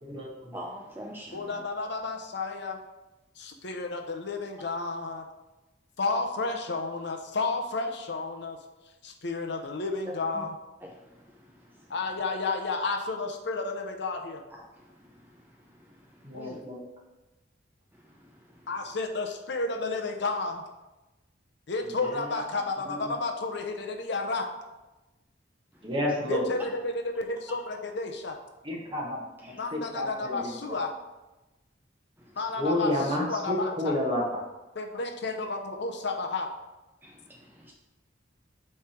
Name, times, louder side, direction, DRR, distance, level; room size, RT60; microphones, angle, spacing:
voice 1, 0.0-0.6 16.2-16.8 22.0-22.4 22.9-23.1 25.8-26.6 28.6-29.2 29.7-30.8 32.6-34.4, left 1 dB, 30° right, -2 dB, 1.5 m, -30 dB
voice 2, 0.5-1.6 10.3-10.5 10.8-10.9 14.5-14.6 16.4-16.6 29.4-29.6 37.0-37.7, equal, 10° right, -1 dB, 0.6 m, -43 dB
voice 3, 1.3-2.8 3.4-5.2 6.0-8.6 9.0-10.6 11.9-14.4 16.3-16.6 18.7-20.6 21.7-24.5 26.3-28.4 29.6-30.9 32.4-34.0 34.7-36.5, left 3 dB, 65° left, 4 dB, 0.8 m, -32 dB
8.4 x 3.4 x 4.5 m, 1.1 s
head